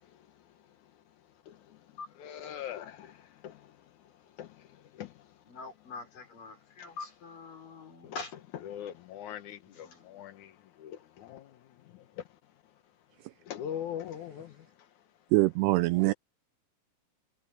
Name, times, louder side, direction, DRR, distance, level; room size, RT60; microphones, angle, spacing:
voice 1, 2.2-3.0 4.4-4.5 5.0-5.1 8.7-9.6 10.1-10.3 10.8-10.9 11.3-11.4 13.5-14.5, left 10 dB, 75° left, 1.8 m, -39 dB
voice 2, 5.4-8.4 9.6-10.2, left 4 dB, 50° left, 7.8 m, -44 dB
voice 3, 15.3-16.1, right 20 dB, 85° right, 2.4 m, -24 dB
omnidirectional pair, 5.0 m